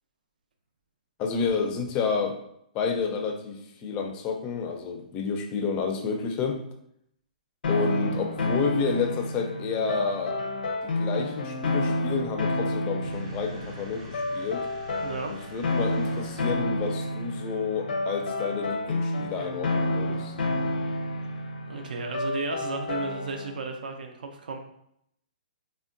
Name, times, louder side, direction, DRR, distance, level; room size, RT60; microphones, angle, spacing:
voice 1, 1.2-2.4 2.7-6.6 7.7-10.4 10.8-14.7 15.3-20.4, left 5 dB, 25° left, 4 dB, 0.4 m, -30 dB
sound 1, 7.6-23.6, left 2 dB, 85° left, 0.5 m, -30 dB
sound 2, 13.0-17.0, right 1 dB, 40° right, 0.6 m, -47 dB
voice 2, 15.0-15.3 21.7-24.6, right 3 dB, 80° right, 4 dB, 0.4 m, -34 dB
3.6 x 2.1 x 2.5 m, 0.74 s
hypercardioid pair, 155°, 5 cm